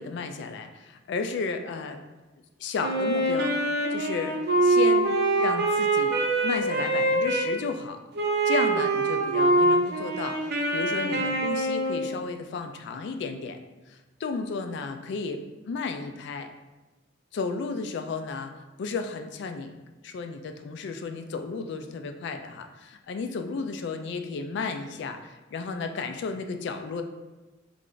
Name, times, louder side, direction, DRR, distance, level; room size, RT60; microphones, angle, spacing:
voice 1, 0.0-2.0 2.6-3.5 3.9-4.4 4.6-8.0 8.4-10.4 10.7-13.6 13.9-16.5 17.3-19.7 20.0-27.0, left 4 dB, 65° left, 7 dB, 0.3 m, -33 dB
Wind instrument woodwind instrument, 2.8-7.5 8.2-12.1, right 2 dB, 60° right, 0.6 m, -24 dB
3.2 x 2.4 x 3.8 m, 1.1 s
head